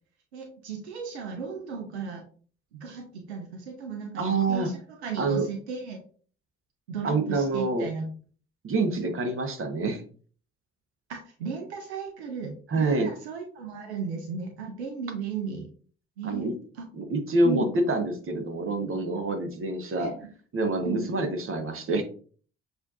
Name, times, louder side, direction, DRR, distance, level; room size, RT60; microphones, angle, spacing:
voice 1, 0.3-2.2 2.7-6.0 6.9-8.1 11.1-15.7 16.2-16.5 16.7-16.8 17.4-17.8 20.0-20.3 20.8-21.2, right 5 dB, 85° right, 4 dB, 0.6 m, -35 dB
voice 2, 4.2-4.7 5.2-5.4 7.0-7.9 8.6-10.0 12.7-13.1 16.2-16.5 16.9-20.1 20.5-22.0, right 2 dB, 40° right, 5 dB, 1.1 m, -26 dB
6.7 x 2.6 x 2.5 m, 0.43 s
figure-of-eight pair, 40°, 32 cm